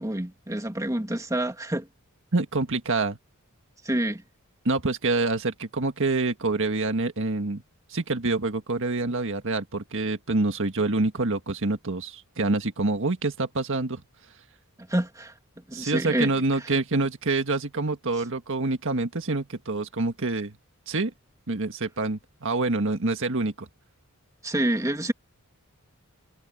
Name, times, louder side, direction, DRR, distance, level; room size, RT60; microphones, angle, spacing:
voice 1, 0.0-1.9 3.8-4.2 14.9-15.3 15.7-16.3 24.4-25.1, right 1 dB, 15° right, 2.2 m, -27 dB
voice 2, 2.3-3.2 4.7-7.6 7.9-14.0 15.7-20.5 20.9-21.1 21.5-23.7, right 3 dB, 60° right, 1.7 m, -26 dB
head